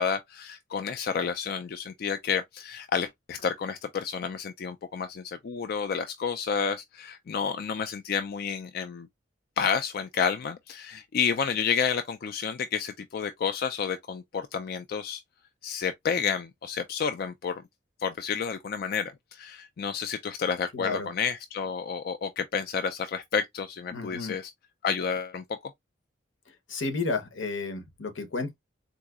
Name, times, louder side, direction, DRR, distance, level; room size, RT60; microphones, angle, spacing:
voice 1, 0.0-9.1 9.6-15.2 15.6-17.5 18.0-24.5 24.8-25.6, left 6 dB, 50° left, 0.3 m, -30 dB
voice 2, 20.7-21.1 23.9-24.4 26.7-28.5, left 3 dB, 80° left, 0.9 m, -32 dB
3.9 x 2.6 x 2.3 m
head